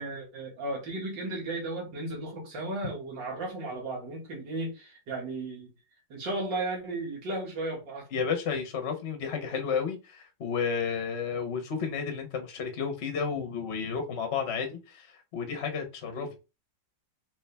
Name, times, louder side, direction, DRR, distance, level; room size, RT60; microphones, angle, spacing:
voice 1, 0.0-5.7 6.1-8.1 16.1-16.3, right 2 dB, 80° right, 2.3 m, -35 dB
voice 2, 8.1-16.4, left 6 dB, 55° left, 0.7 m, -32 dB
4.6 x 2.8 x 3.3 m
omnidirectional pair, 2.0 m